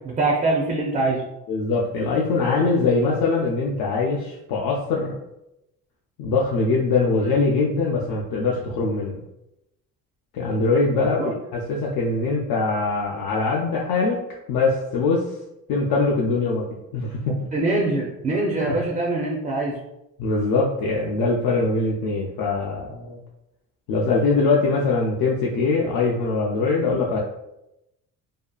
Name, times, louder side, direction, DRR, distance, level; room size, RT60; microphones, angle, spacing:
voice 1, 0.0-1.2 11.2-11.3 17.5-19.8, right 2 dB, 20° right, -2 dB, 0.3 m, -23 dB
voice 2, 1.5-5.1 6.2-9.2 10.3-14.2 14.5-15.3 15.7-16.7 16.9-17.5 18.7-18.8 20.2-23.2 23.9-27.2, left 3 dB, 75° left, -2 dB, 0.5 m, -22 dB
2.7 x 2.4 x 2.2 m, 0.88 s
cardioid pair, 125°, 35 cm